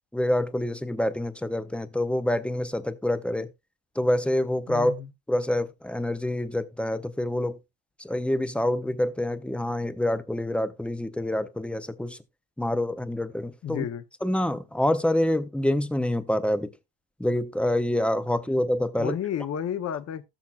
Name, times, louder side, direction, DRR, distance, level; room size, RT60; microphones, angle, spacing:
voice 1, 0.1-3.5 4.0-4.9 5.3-7.6 8.0-12.2 12.6-13.8 14.2-16.7 17.2-19.2, left 1 dB, 5° left, 0.4 m, -26 dB
voice 2, 4.7-5.1 13.6-14.0 19.0-20.3, left 9 dB, 35° left, 0.7 m, -31 dB
17.0 x 7.3 x 2.3 m
cardioid pair, 170°, 42 cm